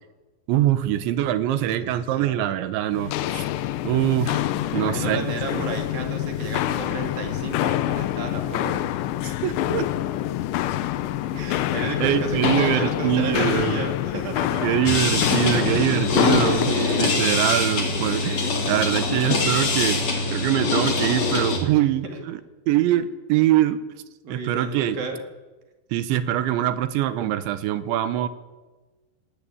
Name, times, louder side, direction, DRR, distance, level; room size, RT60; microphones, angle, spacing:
voice 1, 0.5-3.4 3.8-4.5 4.7-5.3 5.5-5.6 9.2-9.9 12.0-13.9 14.6-20.0 20.3-22.4 22.7-23.8 24.3-25.0 25.9-28.3, right 12 dB, 85° right, 12 dB, 3.5 m, -23 dB
voice 2, 1.6-2.5 4.7-8.9 11.3-14.7 15.6-17.2 21.7-21.8 22.1-22.2 24.2-25.2, right 3 dB, 55° right, 4 dB, 4.1 m, -32 dB
Walk footsteps, 2.9-16.7, left 13 dB, 80° left, 3.1 m, -26 dB
sound 1, 14.9-21.6, left 3 dB, 40° left, 3.9 m, -24 dB
18.5 x 18.5 x 8.6 m, 1.2 s
omnidirectional pair, 5.1 m